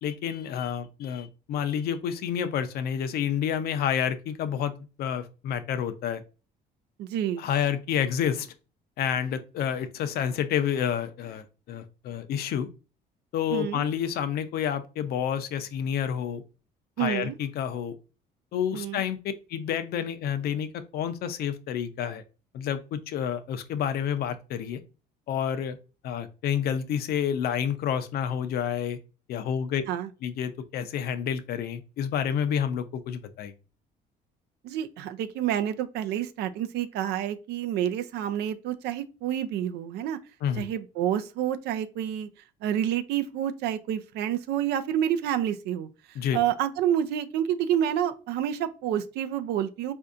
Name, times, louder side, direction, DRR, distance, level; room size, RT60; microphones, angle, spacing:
voice 1, 0.0-4.7 5.0-6.2 7.4-8.5 9.0-12.7 13.3-16.4 17.0-18.0 18.5-19.2 19.5-22.2 22.5-24.8 25.3-25.8 26.0-29.0 29.3-29.8 30.2-33.5 40.4-40.6 46.1-46.4, left 8 dB, 65° left, 0.5 m, -29 dB
voice 2, 7.0-7.4 13.5-13.8 17.0-17.4 18.7-19.0 29.9-30.1 34.6-40.2 40.6-42.3 42.6-45.9 46.3-49.9, right 10 dB, 80° right, 0.5 m, -28 dB
4.3 x 2.6 x 2.4 m
cardioid pair, 110°, 17 cm